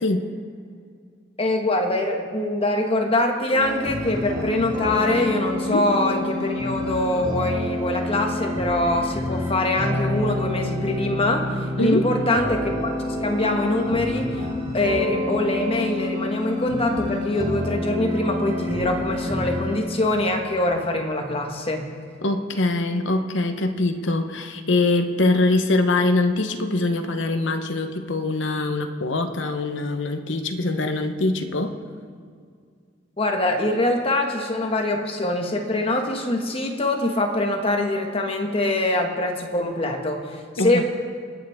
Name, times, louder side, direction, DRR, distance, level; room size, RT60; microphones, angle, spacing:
voice 1, 1.4-11.4 11.8-12.9 13.2-14.4 14.7-21.9 33.2-40.2 40.5-40.8, left 1 dB, 30° left, 2 dB, 1.5 m, -23 dB
sound 1, 3.5-19.8, left 1 dB, 25° right, 2.8 m, -28 dB
voice 2, 22.2-31.8 40.6-40.8, left 2 dB, 85° left, 6 dB, 1.0 m, -23 dB
27.0 x 9.3 x 3.6 m, 2.1 s
head